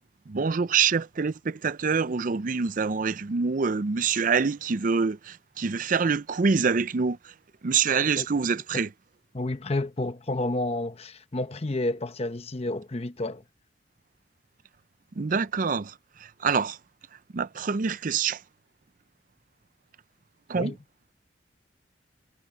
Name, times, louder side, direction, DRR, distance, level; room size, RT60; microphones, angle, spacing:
voice 1, 0.3-7.3 7.6-8.9 15.2-15.9 16.2-16.8 17.3-18.4 20.5-20.7, right 5 dB, 45° right, 0.5 m, -26 dB
voice 2, 9.3-13.4 20.5-20.8, left 2 dB, 35° left, 0.8 m, -30 dB
head